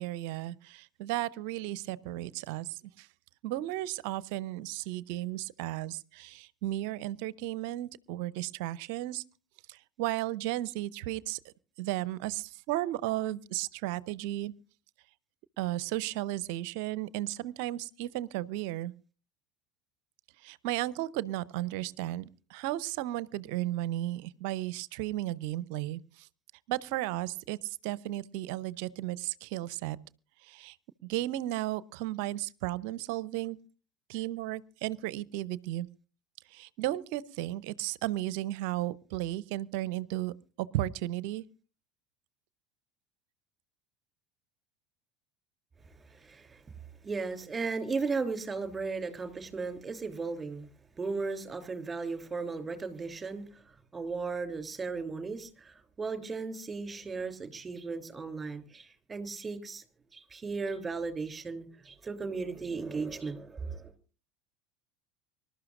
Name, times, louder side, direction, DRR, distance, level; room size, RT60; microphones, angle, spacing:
voice 1, 0.0-3.1 3.4-9.2 9.7-11.5 11.8-14.5 15.6-18.9 20.4-26.3 26.7-30.0 30.4-30.8 31.0-33.6 34.1-35.9 36.5-41.4, right 15 dB, 60° right, 20 dB, 0.7 m, -34 dB
voice 2, 45.9-46.6 47.0-50.7 51.0-59.8 60.1-63.9, right 4 dB, 20° right, 6 dB, 3.1 m, -36 dB
25.0 x 12.5 x 2.5 m, 0.36 s
figure-of-eight pair, 75°, 0 cm